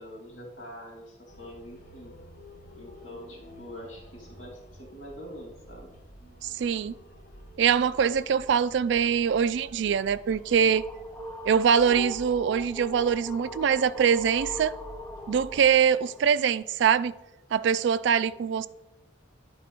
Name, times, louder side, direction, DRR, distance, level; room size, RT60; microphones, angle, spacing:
voice 1, 0.0-2.2 2.8-5.9, equal, 85° left, 2.7 m, -44 dB
sound 1, 1.3-15.7, equal, 45° left, 1.2 m, -50 dB
voice 2, 6.4-6.9 7.6-10.9 11.5-14.7 15.3-17.1 17.5-18.7, right 7 dB, 65° right, 0.3 m, -23 dB
sound 2, 10.4-16.4, left 1 dB, 10° left, 0.5 m, -41 dB
10.0 x 4.2 x 5.1 m
head